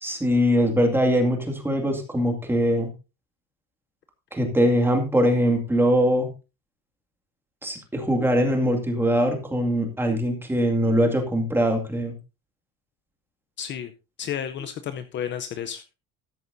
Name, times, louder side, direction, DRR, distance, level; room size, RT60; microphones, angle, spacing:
voice 1, 0.0-2.9 4.3-6.3 7.6-12.1, equal, 5° right, 3 dB, 2.2 m, -22 dB
voice 2, 13.6-13.9 14.2-15.9, left 9 dB, 35° left, 10 dB, 0.7 m, -32 dB
13.5 x 10.5 x 2.6 m, 0.29 s
cardioid pair, 165°, 32 cm